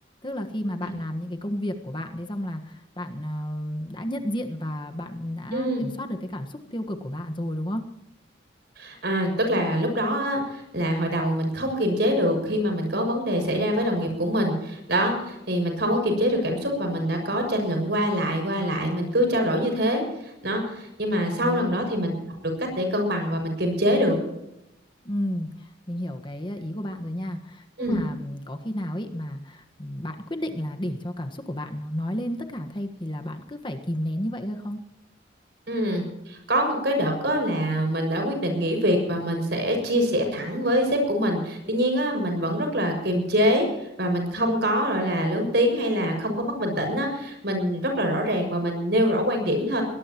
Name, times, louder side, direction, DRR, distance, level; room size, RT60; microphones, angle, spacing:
voice 1, 0.2-7.8 21.4-21.7 25.0-34.8, equal, 25° left, 5 dB, 1.4 m, -32 dB
voice 2, 5.5-5.8 8.8-22.1 22.6-24.1 27.8-28.0 35.7-43.7 44.0-49.8, equal, 60° right, 4 dB, 6.5 m, -24 dB
22.5 x 19.0 x 3.0 m, 0.88 s
head